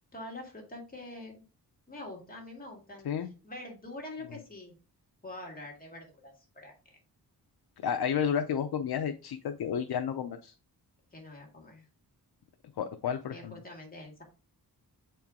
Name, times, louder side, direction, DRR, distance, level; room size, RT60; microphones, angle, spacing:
voice 1, 0.1-1.4 1.9-3.1 3.4-4.8 5.2-7.0 11.1-11.9 13.3-14.2, left 2 dB, 20° left, 0 dB, 2.1 m, -45 dB
voice 2, 7.8-10.5 12.8-13.5, left 8 dB, 70° left, 6 dB, 0.7 m, -31 dB
8.0 x 4.5 x 3.6 m, 0.33 s
wide cardioid pair, 170°, 38 cm